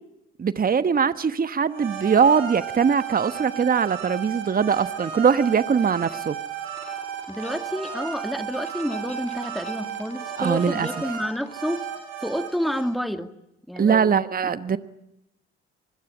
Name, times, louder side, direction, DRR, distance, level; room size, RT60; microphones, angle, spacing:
voice 1, 0.4-6.4 10.4-10.9 13.8-14.8, right 6 dB, 25° right, 13 dB, 1.2 m, -21 dB
sound 1, 1.7-12.8, right 8 dB, 70° right, 7.3 m, -34 dB
sound 2, 6.7-11.8, left 2 dB, 20° left, 4.9 m, -46 dB
voice 2, 7.3-11.8 12.2-13.3 13.7-14.1, equal, ahead, 8 dB, 2.1 m, -29 dB
24.5 x 22.0 x 9.9 m, 0.87 s
hypercardioid pair, 55°, 33 cm